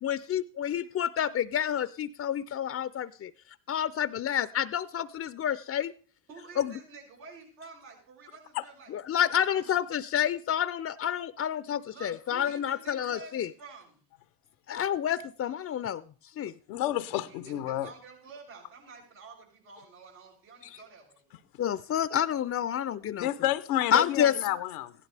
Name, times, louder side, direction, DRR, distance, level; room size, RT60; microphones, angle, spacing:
voice 1, 0.0-3.3 3.7-5.9 6.6-6.7 8.9-13.5 14.7-16.0 16.4-16.5 20.7-20.8 21.6-23.3 23.9-24.3, left 9 dB, 35° left, 0.5 m, -29 dB
voice 2, 6.3-8.9 9.2-9.6 11.9-14.0 17.1-21.3, right 4 dB, 85° right, 6.4 m, -49 dB
voice 3, 16.7-17.9 23.2-24.9, left 13 dB, 85° left, 0.7 m, -30 dB
15.5 x 11.0 x 3.4 m
hypercardioid pair, 60°, 44 cm